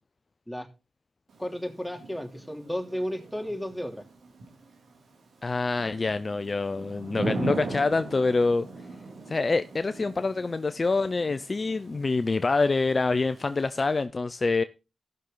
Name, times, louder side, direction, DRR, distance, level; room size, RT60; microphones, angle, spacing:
Thunder / Rain, 1.3-14.0, right 3 dB, 80° right, 2.9 m, -40 dB
voice 1, 1.4-4.0, equal, 5° left, 2.9 m, -33 dB
voice 2, 5.4-8.7 9.3-14.6, left 3 dB, 45° left, 0.5 m, -26 dB
14.5 x 6.5 x 3.9 m
supercardioid pair, 40°, 0 cm